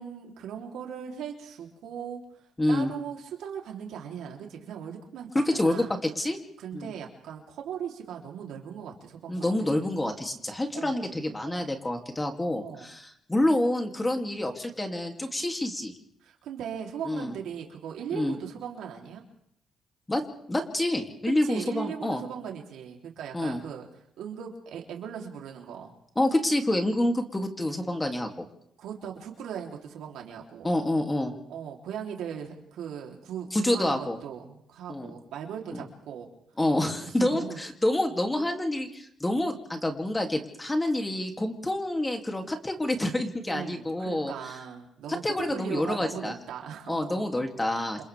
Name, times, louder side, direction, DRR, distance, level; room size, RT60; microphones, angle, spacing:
voice 1, 0.0-2.2 2.7-5.9 6.6-9.8 10.7-11.0 11.4-11.7 12.6-12.9 16.2-19.2 21.4-23.9 24.2-25.9 28.8-30.7 31.5-36.3 37.0-37.6 43.5-47.5 47.7-48.0, right 8 dB, 80° right, 1 dB, 3.4 m, -39 dB
voice 2, 2.6-2.9 5.3-5.8 6.2-6.4 6.7-6.9 9.3-15.9 17.0-17.3 18.1-18.3 20.1-20.2 20.5-22.2 23.3-23.6 26.2-28.5 30.6-31.3 33.5-34.2 34.9-35.1 35.7-35.8 36.6-44.3 45.1-46.3 46.9-48.0, left 1 dB, 15° left, 4 dB, 2.7 m, -27 dB
29.0 x 27.0 x 3.5 m, 0.72 s
cardioid pair, 90°, 0 cm